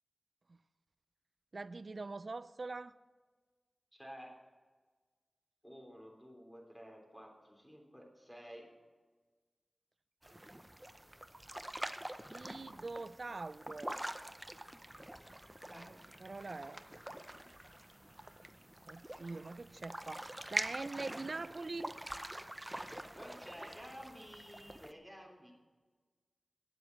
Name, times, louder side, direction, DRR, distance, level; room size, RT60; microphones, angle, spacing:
voice 1, 1.5-3.0 12.3-14.0 15.6-16.8 18.8-21.9, right 3 dB, 65° right, 16 dB, 0.4 m, -44 dB
voice 2, 3.9-4.3 5.6-8.6 15.7-15.8 23.1-25.5, equal, 5° left, 0 dB, 3.3 m, -52 dB
sound 1, 10.2-24.9, right 1 dB, 15° right, 0.7 m, -45 dB
10.0 x 7.9 x 7.1 m, 1.4 s
cardioid pair, 45°, 0 cm